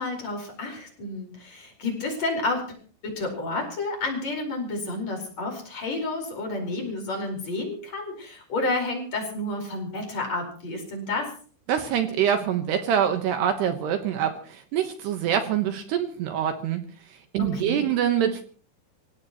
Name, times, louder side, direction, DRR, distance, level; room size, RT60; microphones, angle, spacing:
voice 1, 0.0-2.7 3.0-11.3 17.4-17.9, left 2 dB, 35° left, 2 dB, 5.6 m, -30 dB
voice 2, 11.7-16.8 17.3-18.4, right 9 dB, 70° right, 6 dB, 3.0 m, -25 dB
27.5 x 17.0 x 3.1 m, 0.41 s
omnidirectional pair, 5.4 m